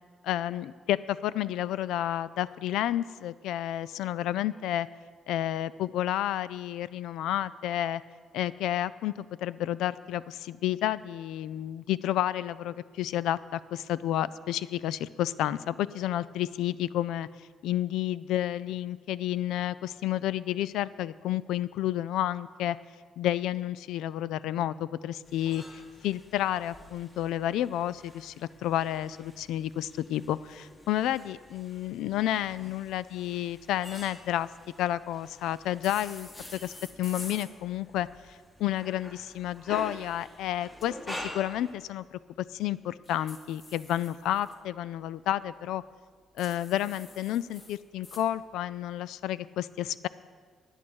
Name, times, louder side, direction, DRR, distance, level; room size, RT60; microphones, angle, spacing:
voice 1, 0.2-4.9 5.3-8.0 8.3-17.3 17.6-22.8 23.2-34.5 34.8-36.7 37.0-45.8 46.4-50.1, left 12 dB, 90° left, 18 dB, 0.3 m, -31 dB
sound 1, 25.2-41.7, left 1 dB, 15° left, 1.8 m, -48 dB
sound 2, 35.8-37.5 39.5-40.9 43.0-44.5 46.4-48.3, left 2 dB, 35° left, 1.7 m, -48 dB
11.0 x 8.9 x 6.3 m, 1.5 s
cardioid pair, 90°, 0 cm